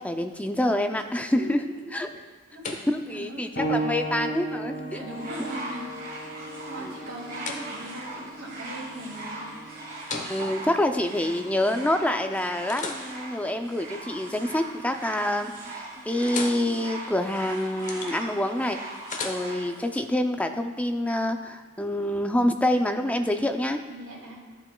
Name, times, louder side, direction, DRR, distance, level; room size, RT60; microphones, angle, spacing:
voice 1, 0.0-1.6 1.9-2.1 2.9-5.0 6.8-6.9 10.1-18.8 19.2-23.8, left 1 dB, 5° left, 6 dB, 0.4 m, -27 dB
voice 2, 1.3-1.7 2.5-2.7 3.1-3.5 4.7-5.8 6.7-9.5 23.9-24.4, right 1 dB, 80° right, -3 dB, 2.4 m, -39 dB
sound 1, 1.9-11.9 12.4-14.6 15.0-15.4 15.7-20.0, left 3 dB, 35° left, 0.9 m, -41 dB
sound 2, 3.5-13.8 14.7-14.8 15.6-15.7, right 1 dB, 65° left, 2.0 m, -37 dB
sound 3, 5.1-19.7 20.6-20.7, right 2 dB, 45° right, 2.6 m, -40 dB
12.5 x 7.8 x 2.3 m, 1.4 s
head